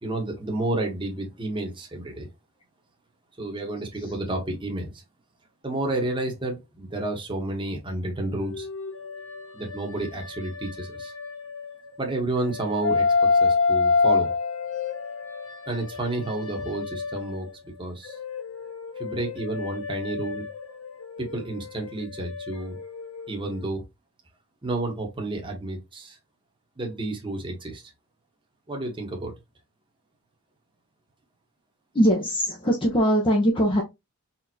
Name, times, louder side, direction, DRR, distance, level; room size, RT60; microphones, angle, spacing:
voice 1, 0.0-2.3 3.4-5.0 5.6-8.7 9.5-11.1 12.0-13.0 13.4-14.3 15.7-17.5 17.8-18.2 19.0-20.4 21.2-22.8 23.3-23.8 24.6-26.2 26.8-27.8 28.7-29.3, right 2 dB, 20° right, 1.2 m, -30 dB
sound 1, 8.4-12.0 12.4-17.6 18.0-23.6, left 4 dB, 60° left, 1.1 m, -28 dB
voice 2, 31.9-33.8, equal, 25° left, 0.8 m, -21 dB
4.4 x 3.6 x 2.8 m
head